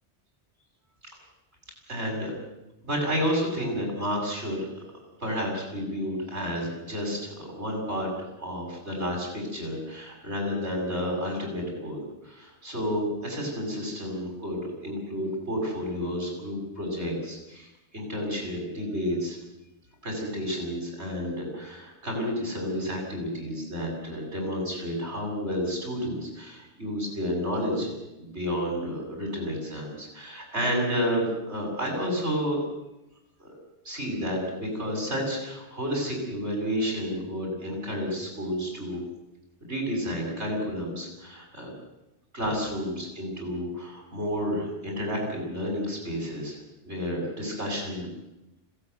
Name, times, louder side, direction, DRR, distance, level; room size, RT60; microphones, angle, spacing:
voice 1, 1.9-2.3 2.8-4.8 5.2-8.1 8.4-17.7 17.9-19.4 20.0-32.6 33.4-33.5 33.8-39.0 39.6-41.7 42.3-46.6 46.8-48.1, equal, 75° right, 0 dB, 7.4 m, -31 dB
21.0 x 17.5 x 9.5 m, 0.94 s
omnidirectional pair, 1.1 m